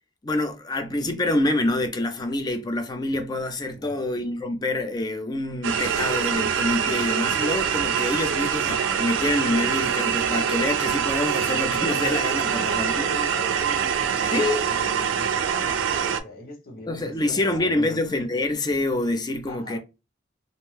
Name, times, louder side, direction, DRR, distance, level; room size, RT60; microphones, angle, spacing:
voice 1, 0.2-13.0 14.3-14.7 16.9-19.8, left 2 dB, 20° left, 0.5 m, -26 dB
voice 2, 3.7-4.1 12.5-18.2 19.5-19.8, left 2 dB, 50° left, 1.1 m, -40 dB
sound 1, 5.6-16.2, right 7 dB, 85° right, 0.4 m, -24 dB
2.6 x 2.2 x 3.2 m
head